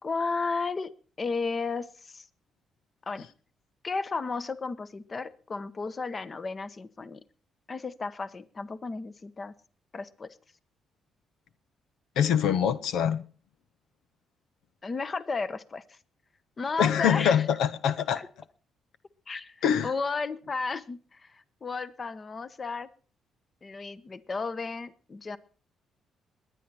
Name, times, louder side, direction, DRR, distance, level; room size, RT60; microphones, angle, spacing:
voice 1, 0.0-0.9 1.2-2.3 3.1-3.2 3.8-7.2 7.7-9.5 9.9-10.4 14.8-16.0 16.6-17.5 18.1-18.3 19.3-22.9 23.6-25.4, left 4 dB, 35° left, 1.1 m, -33 dB
voice 2, 12.2-13.2 16.8-18.2 19.6-19.9, left 8 dB, 80° left, 0.7 m, -24 dB
21.5 x 10.0 x 4.3 m
cardioid pair, 90°, 0 cm